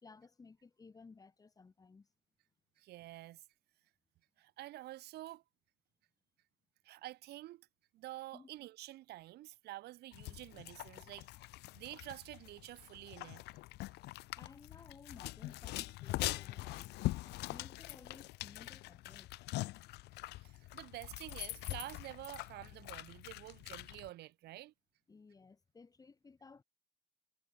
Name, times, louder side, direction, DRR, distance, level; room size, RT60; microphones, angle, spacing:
voice 1, 0.0-2.1 8.3-8.5 14.3-19.3 25.1-26.6, left 4 dB, 20° left, 1.0 m, -58 dB
voice 2, 2.8-3.4 4.4-5.4 6.8-7.7 7.9-11.3 11.7-13.4 20.3-24.7, right 16 dB, 75° right, 1.1 m, -49 dB
sound 1, 10.1-24.1, left 19 dB, 80° left, 0.6 m, -43 dB
cardioid pair, 110°, 17 cm